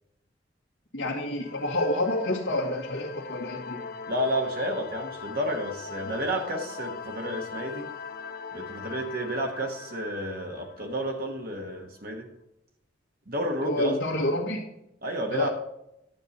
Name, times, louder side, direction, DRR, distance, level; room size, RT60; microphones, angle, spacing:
voice 1, 0.9-3.8 13.6-14.6 15.3-15.5, left 1 dB, 80° left, -5 dB, 1.7 m, -28 dB
sound 1, 1.4-11.8, left 5 dB, 55° left, 0.7 m, -40 dB
voice 2, 4.1-7.9 8.5-12.3 13.3-14.0 15.0-15.5, equal, 55° right, 2 dB, 1.4 m, -31 dB
10.5 x 8.1 x 4.2 m, 0.83 s
head